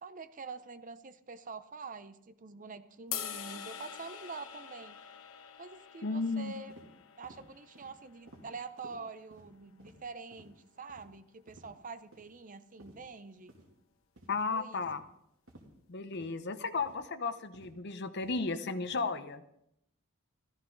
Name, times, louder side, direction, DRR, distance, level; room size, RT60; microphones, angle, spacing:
voice 1, 0.0-5.0 5.6-6.7 7.2-13.5 14.5-14.8, right 4 dB, 40° right, 12 dB, 0.6 m, -46 dB
sound 1, 3.1-9.3, left 9 dB, 70° left, 1.0 m, -45 dB
voice 2, 6.0-6.5 14.3-15.0 15.9-19.4, left 4 dB, 50° left, 11 dB, 0.8 m, -34 dB
sound 2, 6.7-6.9 7.2-7.4 7.7-7.9 8.3-8.4 8.8-8.9 9.3-9.5 9.8-10.0 10.3-10.5 10.9-11.1 11.5-11.7 12.1-12.3 12.8-13.0 13.5-13.7 14.2-14.4 14.8-15.0 15.5-15.7 16.1-16.3 16.8-17.0 17.5-17.8 18.2-18.4 18.8-19.0, right 1 dB, 75° right, 2.6 m, -55 dB
14.5 x 14.0 x 3.9 m, 0.78 s
head